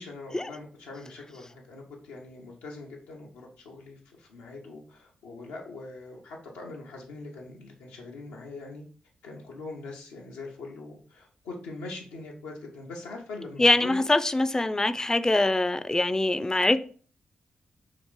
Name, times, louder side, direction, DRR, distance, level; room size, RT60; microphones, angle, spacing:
voice 1, 0.0-8.8 9.2-14.1, left 3 dB, 85° left, 0.7 m, -42 dB
voice 2, 13.6-16.8, left 2 dB, 20° left, 0.3 m, -23 dB
2.9 x 2.5 x 3.6 m
hypercardioid pair, 40°, 3 cm